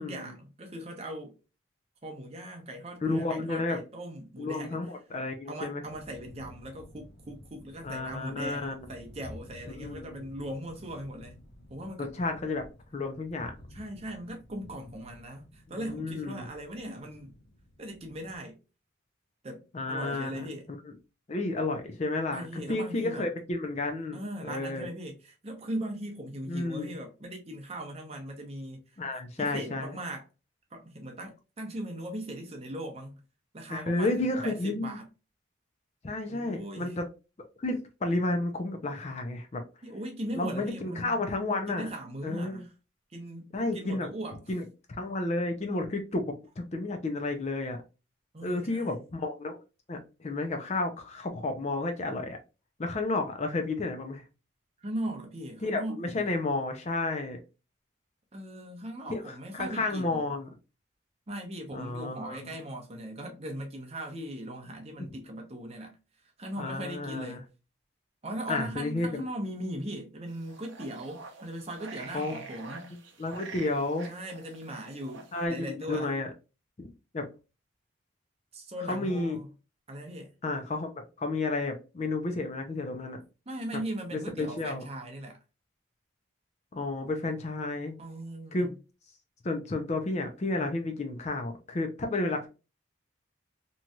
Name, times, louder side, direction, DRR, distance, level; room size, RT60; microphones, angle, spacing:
voice 1, 0.0-1.3 2.0-4.9 5.5-11.4 11.7-12.1 13.7-17.3 17.8-18.6 19.4-20.7 22.3-23.3 24.1-28.8 29.4-30.3 30.7-33.2 33.5-35.1 36.3-37.0 39.8-41.2 41.7-42.7 43.1-44.4 48.3-49.0 54.8-56.3 58.3-60.3 61.3-65.9 66.4-67.4 68.2-72.9 74.1-76.1 78.5-79.5 79.9-80.3 83.5-85.4 88.0-88.8 90.6-90.7, right 1 dB, 30° right, 0.7 m, -39 dB
voice 2, 3.0-3.8 4.4-5.8 7.8-8.8 9.8-10.2 12.0-12.6 12.9-13.5 15.8-16.5 19.7-20.5 20.9-21.0 21.3-24.2 24.5-24.9 26.5-26.9 29.0-30.0 33.7-35.0 36.0-37.1 37.6-39.6 40.4-41.9 42.2-42.6 43.5-44.1 44.5-44.6 45.0-47.8 48.4-49.6 49.9-52.4 52.8-54.2 55.6-57.4 59.1-60.5 61.7-62.5 66.6-67.4 68.5-69.2 72.1-72.5 73.2-74.1 75.3-76.3 76.8-77.3 78.9-79.4 80.4-83.2 84.1-84.8 86.7-88.0 88.5-88.7 89.4-92.5, left 2 dB, 35° left, 0.4 m, -31 dB
sound 1, 5.8-18.4, left 1 dB, 85° left, 0.9 m, -52 dB
sound 2, 70.3-75.5, right 3 dB, 70° right, 0.7 m, -47 dB
3.0 x 2.7 x 2.2 m
head